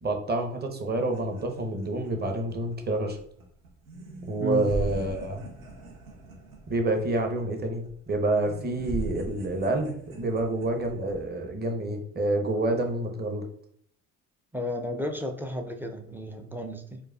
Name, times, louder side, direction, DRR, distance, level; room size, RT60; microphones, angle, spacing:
voice 1, 0.0-3.2 4.3-5.4 6.7-13.4, right 2 dB, 25° right, 4 dB, 0.8 m, -28 dB
sound 1, 1.0-11.3, right 3 dB, 85° right, 0.8 m, -40 dB
voice 2, 4.4-4.7 14.5-17.0, equal, 5° right, 4 dB, 0.4 m, -33 dB
4.5 x 2.3 x 2.3 m, 0.64 s
hypercardioid pair, 55°, 41 cm